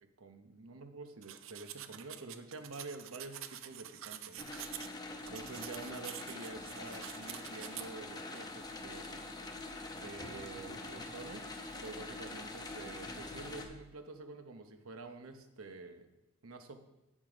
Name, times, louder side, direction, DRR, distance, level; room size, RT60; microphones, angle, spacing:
voice 1, 0.0-4.5 5.3-9.3 10.0-11.4 11.8-16.1 16.4-16.8, right 3 dB, 80° right, 7 dB, 1.0 m, -48 dB
sound 1, 1.2-4.9 5.3-7.9, right 11 dB, 65° right, 0.5 m, -47 dB
sound 2, 4.4-13.7, left 2 dB, 20° left, 0.9 m, -45 dB
8.4 x 7.4 x 5.1 m, 1.0 s
head